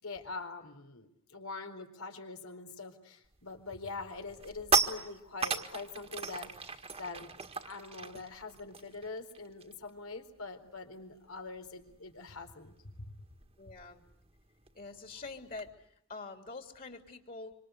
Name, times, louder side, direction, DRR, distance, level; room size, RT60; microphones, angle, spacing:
voice 1, 0.0-7.3 7.6-13.1, left 3 dB, 85° left, 6 dB, 4.3 m, -44 dB
sound 1, 3.3-3.6 4.0-9.9 10.2-10.4 10.7-15.7, right 5 dB, 30° right, 1.7 m, -36 dB
voice 2, 13.6-14.0 14.7-17.5, left 3 dB, 40° left, 5 dB, 3.1 m, -45 dB
26.5 x 26.0 x 8.2 m, 0.77 s
head